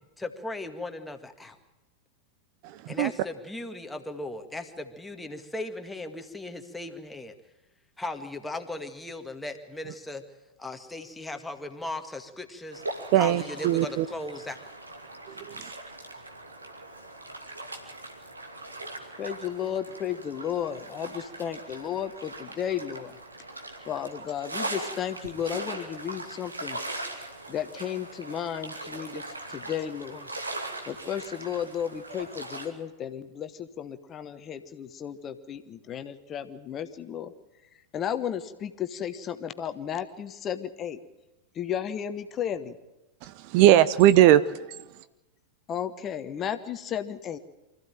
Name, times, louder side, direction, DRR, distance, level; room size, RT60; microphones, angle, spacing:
voice 1, 0.2-1.6 2.9-7.3 8.0-10.2 10.6-12.8 13.2-14.6, left 2 dB, 5° left, 1.9 m, -37 dB
sound 1, 12.7-32.7, right 2 dB, 80° right, 2.6 m, -40 dB
voice 2, 13.1-14.1 15.3-15.6 43.2-44.4, right 13 dB, 45° right, 0.8 m, -19 dB
voice 3, 19.2-23.2 23.9-26.8 27.5-30.3 30.9-37.3 37.9-41.0 41.5-42.8 45.7-47.4, left 9 dB, 30° left, 1.2 m, -33 dB
25.0 x 15.0 x 9.1 m
figure-of-eight pair, 90°, 0 cm